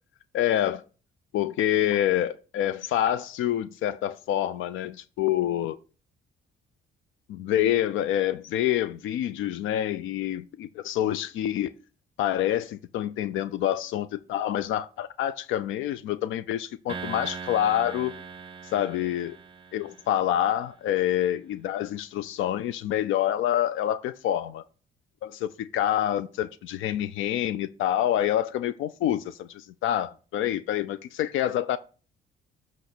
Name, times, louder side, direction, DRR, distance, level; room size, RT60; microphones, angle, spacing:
voice 1, 0.3-0.8 1.3-5.8 7.3-11.7 12.2-18.1 18.6-19.4 19.7-24.6 25.2-31.8, left 11 dB, 85° left, 0.4 m, -27 dB
sound 1, 16.9-20.4, right 6 dB, 25° right, 0.6 m, -40 dB
7.8 x 3.1 x 6.0 m
cardioid pair, 90°, 20 cm